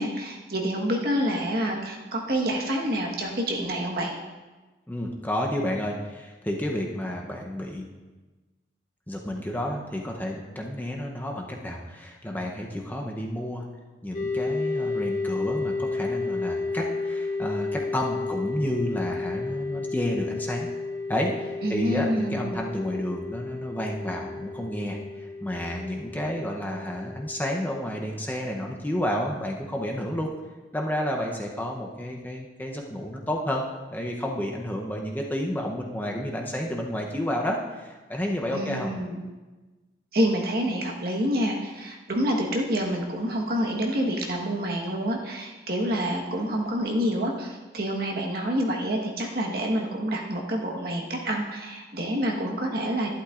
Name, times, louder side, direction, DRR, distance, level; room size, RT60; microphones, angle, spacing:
voice 1, 0.0-4.1 21.6-22.6 38.5-39.2 40.1-53.1, equal, 55° right, 0 dB, 1.3 m, -27 dB
voice 2, 4.9-7.9 9.1-13.6 14.0-20.7 21.1-25.0 25.4-30.3 30.7-38.9, equal, 10° left, 0 dB, 0.7 m, -30 dB
sound 1, 14.1-28.0, left 3 dB, 50° left, 0.7 m, -32 dB
11.5 x 11.5 x 2.5 m, 1.2 s
head